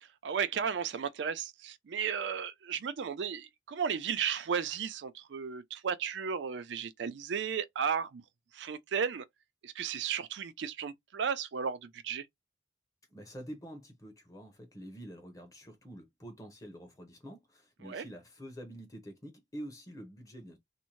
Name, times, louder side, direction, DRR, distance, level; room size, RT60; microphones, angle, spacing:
voice 1, 0.0-8.2 8.5-9.3 9.6-12.3 17.8-18.1, right 7 dB, 75° right, 0.4 m, -34 dB
voice 2, 13.1-20.6, equal, 20° left, 0.7 m, -47 dB
2.6 x 2.0 x 3.0 m
head